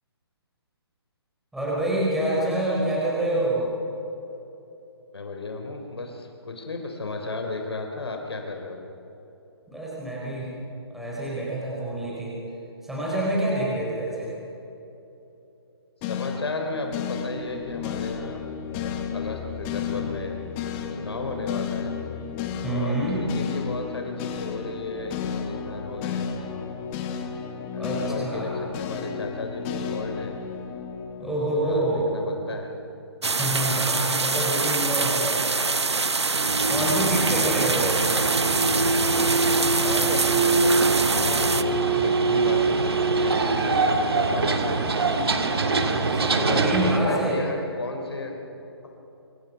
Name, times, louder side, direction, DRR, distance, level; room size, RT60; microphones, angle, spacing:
voice 1, 1.5-3.6 9.7-10.5 10.9-12.3 12.8-14.3 22.6-23.2 27.8-28.6 31.2-32.1 33.2-35.5 36.7-38.2 45.8-47.5, right 1 dB, ahead, -6 dB, 5.2 m, -27 dB
voice 2, 5.1-8.8 16.0-18.4 18.8-20.4 20.9-21.9 22.7-26.7 27.7-30.3 31.2-32.7 35.1-35.3 36.6-37.4 39.8-44.9 46.3-48.3, left 3 dB, 70° left, 3 dB, 3.7 m, -34 dB
sound 1, 16.0-32.3, left 7 dB, 25° left, 1.8 m, -33 dB
sound 2, 33.2-41.6, right 4 dB, 85° right, 1.0 m, -25 dB
sound 3, 36.3-47.0, right 3 dB, 65° right, 2.6 m, -23 dB
26.5 x 24.5 x 5.9 m, 3.0 s
figure-of-eight pair, 140°, 14 cm